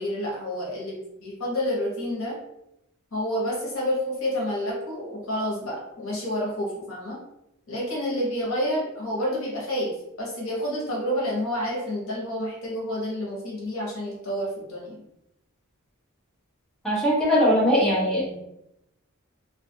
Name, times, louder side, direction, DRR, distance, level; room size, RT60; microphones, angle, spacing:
voice 1, 0.0-2.4 3.1-7.2 7.7-15.0, equal, 65° left, -4 dB, 0.9 m, -29 dB
voice 2, 16.8-18.4, equal, ahead, -9 dB, 1.0 m, -21 dB
2.4 x 2.4 x 2.6 m, 0.83 s
head